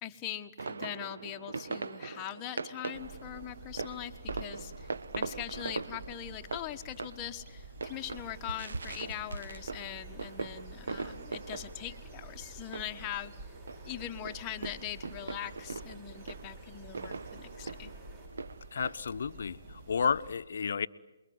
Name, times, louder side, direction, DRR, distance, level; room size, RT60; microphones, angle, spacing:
voice 1, 0.0-13.3 13.8-17.9, left 11 dB, 20° left, 1.3 m, -41 dB
sound 1, 0.6-20.0, right 4 dB, 70° right, 1.2 m, -42 dB
sound 2, 2.9-20.4, right 2 dB, 40° right, 6.6 m, -50 dB
sound 3, 7.8-18.3, right 1 dB, 20° right, 7.5 m, -55 dB
voice 2, 18.7-19.6 19.9-20.9, left 6 dB, 65° left, 0.9 m, -31 dB
28.0 x 22.5 x 9.6 m
hypercardioid pair, 150°, 0 cm